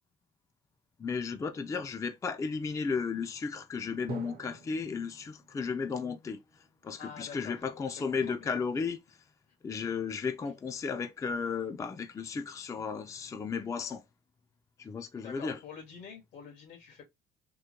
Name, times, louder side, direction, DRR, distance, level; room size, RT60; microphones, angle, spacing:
voice 1, 1.0-9.0 9.6-14.0 14.8-15.6, left 5 dB, 20° left, 0.3 m, -34 dB
Drum, 4.1-7.8, right 7 dB, 60° right, 0.7 m, -49 dB
voice 2, 7.0-8.5 9.5-9.6 15.2-17.0, left 6 dB, 85° left, 1.9 m, -47 dB
3.7 x 2.1 x 2.8 m
cardioid pair, 110°, 17 cm